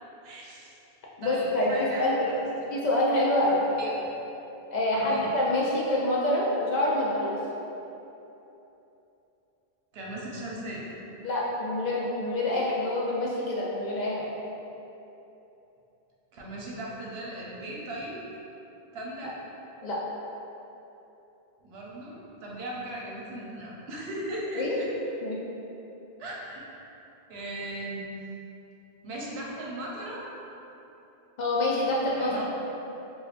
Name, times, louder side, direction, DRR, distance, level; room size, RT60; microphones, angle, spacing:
voice 1, 0.2-0.7 1.2-2.5 2.9-3.0 3.8-3.9 4.9-5.3 9.9-10.9 12.5-12.6 16.3-18.3 18.9-19.4 21.6-24.9 26.2-26.6 27.3-28.1 29.0-30.3 32.2-32.4, right 1 dB, 75° right, -4 dB, 0.9 m, -37 dB
voice 2, 1.2-2.1 2.7-3.6 4.7-7.4 11.2-14.3 19.8-20.0 24.6-24.8 25.2-25.4 31.4-32.4, left 1 dB, 55° left, -5 dB, 0.5 m, -26 dB
4.5 x 2.3 x 2.4 m, 3.0 s
omnidirectional pair, 1.1 m